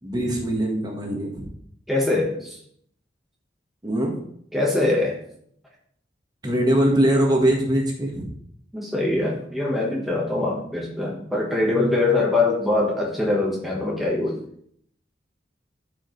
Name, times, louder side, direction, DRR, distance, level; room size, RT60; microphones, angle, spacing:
voice 1, 0.0-1.5 3.8-4.2 6.4-8.3, right 1 dB, 20° right, 0 dB, 1.5 m, -22 dB
voice 2, 1.9-2.6 4.5-5.2 8.7-14.4, left 2 dB, ahead, -4 dB, 1.3 m, -23 dB
13.5 x 5.0 x 3.2 m, 0.66 s
head